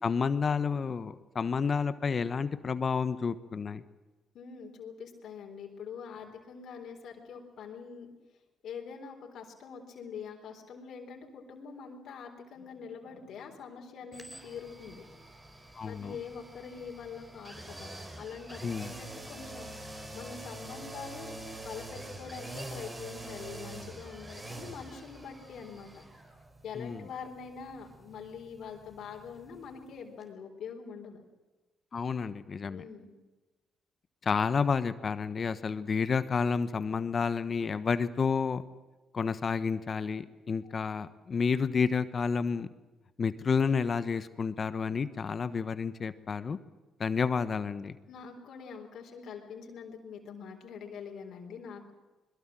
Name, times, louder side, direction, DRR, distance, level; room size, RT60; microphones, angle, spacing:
voice 1, 0.0-3.8 15.8-16.2 18.6-18.9 26.8-27.0 31.9-32.8 34.2-38.6 39.1-42.7 43.2-46.6 47.0-47.9, left 5 dB, 40° left, 13 dB, 1.2 m, -30 dB
voice 2, 4.3-8.1 8.6-15.1 15.8-26.2 26.6-31.2 32.7-33.1 40.6-40.7 48.1-51.9, left 6 dB, 70° left, 1 dB, 3.9 m, -44 dB
sound 1, 14.1-29.9 30.2-30.3, right 2 dB, 20° right, 4.5 m, -46 dB
21.5 x 21.5 x 7.7 m, 1.2 s
cardioid pair, 80°, 0 cm